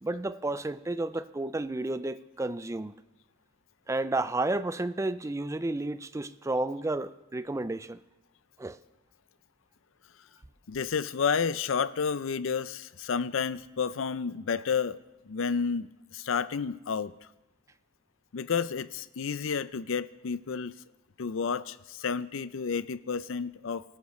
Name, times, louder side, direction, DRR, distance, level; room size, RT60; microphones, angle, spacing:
voice 1, 0.0-2.9 3.9-8.0 8.6-8.8, right 2 dB, 15° right, 0.4 m, -31 dB
voice 2, 10.7-15.0 15.2-17.1 18.3-20.7 21.2-23.8, left 6 dB, 70° left, 0.5 m, -31 dB
23.5 x 14.5 x 3.2 m
head